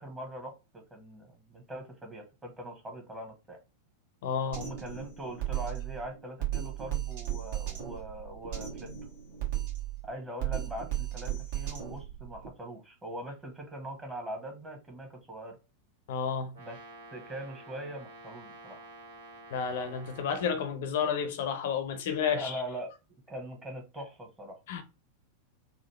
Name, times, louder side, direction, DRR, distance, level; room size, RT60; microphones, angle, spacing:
voice 1, 0.0-3.6 4.5-8.9 10.0-15.6 16.6-16.8 17.1-18.8 22.3-22.9 23.3-24.6, right 1 dB, 15° right, 1.4 m, -42 dB
voice 2, 4.2-4.6 16.1-16.5 19.5-22.6 24.7-24.8, left 7 dB, 55° left, 0.6 m, -31 dB
Drum kit, 4.5-12.5, right 13 dB, 50° right, 1.5 m, -36 dB
Brass instrument, 16.5-20.6, right 2 dB, 65° right, 1.5 m, -50 dB
4.0 x 2.4 x 3.1 m
figure-of-eight pair, 90°, 0 cm